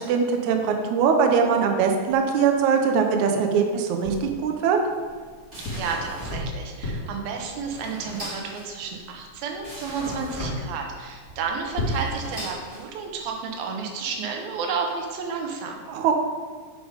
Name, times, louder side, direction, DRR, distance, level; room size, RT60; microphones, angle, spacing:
voice 1, 0.0-4.8 15.9-16.1, right 6 dB, 75° right, 4 dB, 1.9 m, -21 dB
sound 1, 1.5-3.6 4.0-4.7 5.3-6.3 6.6-7.7 8.3-8.4 8.7-15.2, left 1 dB, 55° left, 3.4 m, -36 dB
sound 2, 5.0-13.3, equal, 10° right, 2.6 m, -37 dB
voice 2, 5.7-15.8, right 5 dB, 90° right, 2 dB, 2.9 m, -31 dB
7.5 x 7.1 x 5.1 m, 1.5 s
omnidirectional pair, 4.1 m